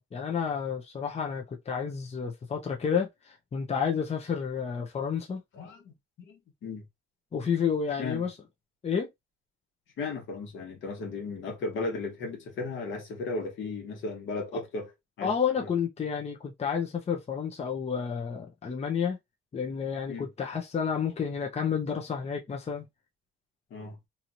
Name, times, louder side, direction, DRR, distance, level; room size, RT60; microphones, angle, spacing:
voice 1, 0.0-5.4 7.3-8.3 8.8-9.1 15.2-19.2 19.5-22.9, left 7 dB, 30° left, 0.7 m, -30 dB
voice 2, 5.5-5.9 6.3-6.8 8.0-8.2 10.0-15.3 20.1-20.3 23.7-24.0, left 3 dB, 75° left, 1.4 m, -35 dB
2.8 x 2.8 x 2.6 m
cardioid pair, 90°, 20 cm